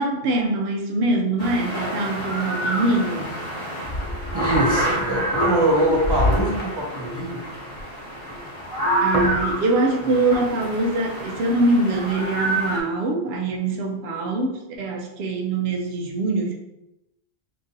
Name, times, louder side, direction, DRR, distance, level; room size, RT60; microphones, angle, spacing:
voice 1, 0.0-3.5 9.0-16.5, right 2 dB, 75° right, 1 dB, 0.9 m, -23 dB
sound 1, 1.4-12.8, equal, 35° left, 1.0 m, -26 dB
voice 2, 4.3-7.4 10.0-10.1, right 1 dB, 25° right, -2 dB, 0.7 m, -23 dB
3.8 x 2.9 x 2.6 m, 0.90 s
omnidirectional pair, 1.1 m